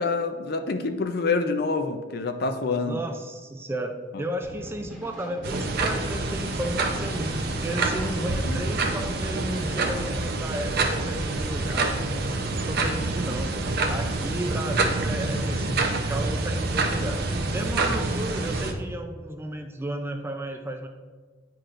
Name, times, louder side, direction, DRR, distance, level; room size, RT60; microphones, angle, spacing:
voice 1, 0.0-3.0 4.1-4.2 8.5-8.6, left 3 dB, 50° left, 7 dB, 0.5 m, -27 dB
voice 2, 2.8-11.9 12.4-13.5 13.9-17.2 17.5-20.9, right 1 dB, 10° right, 5 dB, 0.4 m, -33 dB
sound 1, 4.4-12.0, equal, 5° left, 1.3 m, -43 dB
sound 2, 5.4-18.7, right 2 dB, 50° right, 0.7 m, -27 dB
9.9 x 4.6 x 2.5 m, 1.5 s
head